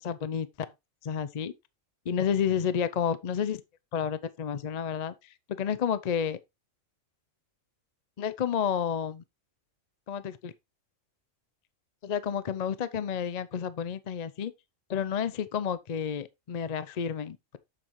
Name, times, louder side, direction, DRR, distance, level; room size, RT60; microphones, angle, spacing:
voice 1, 0.0-0.7 1.0-1.5 2.1-3.6 3.9-5.1 5.6-6.4 8.2-9.2 10.1-10.5 12.0-14.5 14.9-17.6, left 8 dB, 55° left, 0.4 m, -30 dB
7.7 x 7.4 x 3.1 m
omnidirectional pair, 1.4 m